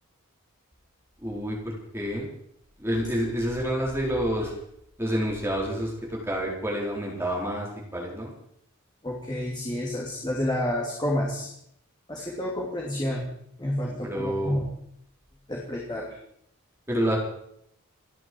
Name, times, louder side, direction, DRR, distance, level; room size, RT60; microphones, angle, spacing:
voice 1, 1.2-2.3 2.8-4.5 5.0-8.3 13.9-14.5 16.9-17.2, equal, 10° right, -3 dB, 4.4 m, -28 dB
voice 2, 9.0-11.5 12.1-13.2 13.6-14.6 15.5-16.2, left 1 dB, 20° left, -3 dB, 2.9 m, -29 dB
28.0 x 10.5 x 4.7 m, 0.72 s
head